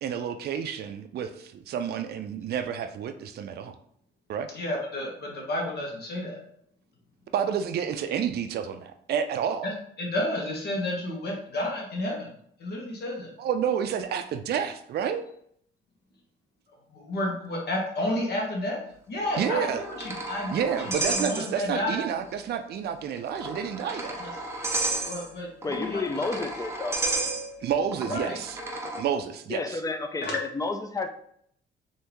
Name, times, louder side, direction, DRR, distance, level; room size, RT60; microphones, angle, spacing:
voice 1, 0.0-3.8 4.3-4.5 7.3-9.7 13.4-15.2 19.4-19.9 20.5-24.2 27.6-28.6 29.0-29.8, right 8 dB, 55° right, 9 dB, 0.4 m, -29 dB
voice 2, 4.5-6.4 9.6-9.7 10.0-12.3 12.6-13.3 16.9-18.8 19.1-22.1 24.2-24.3 25.0-26.3 28.0-28.4 30.2-30.4, left 1 dB, 55° left, -1 dB, 1.2 m, -31 dB
sound 1, 19.2-21.9 22.2-22.3 23.2-29.0, right 2 dB, 15° right, 0.7 m, -33 dB
voice 3, 25.6-27.0 29.5-31.1, left 3 dB, 15° left, 7 dB, 0.4 m, -31 dB
3.3 x 2.7 x 3.0 m, 0.67 s
cardioid pair, 90°, 20 cm